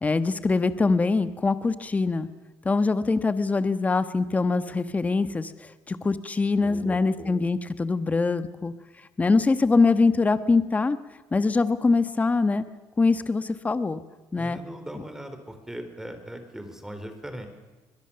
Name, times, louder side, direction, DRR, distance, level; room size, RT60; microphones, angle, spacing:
voice 1, 0.0-2.3 2.6-8.7 9.2-11.0 11.3-12.6 13.0-14.0 14.3-14.6, left 3 dB, 20° left, 12 dB, 1.3 m, -23 dB
voice 2, 6.6-7.4 14.4-17.5, right 1 dB, 5° right, 7 dB, 3.9 m, -39 dB
22.5 x 21.5 x 7.0 m, 1.2 s
cardioid pair, 105°, 7 cm